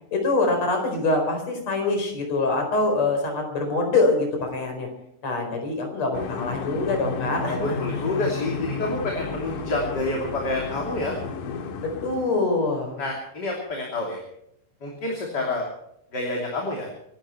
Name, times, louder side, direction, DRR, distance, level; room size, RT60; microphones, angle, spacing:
voice 1, 0.1-4.9 5.2-8.0 11.8-13.0, left 3 dB, 55° left, 4 dB, 5.7 m, -24 dB
sound 1, 6.1-12.4, left 5 dB, 85° left, 3.1 m, -32 dB
voice 2, 7.4-11.2 13.0-14.2 14.8-15.7 16.1-16.9, left 2 dB, 35° left, -1 dB, 3.4 m, -28 dB
26.0 x 12.5 x 4.5 m, 0.76 s
omnidirectional pair, 3.6 m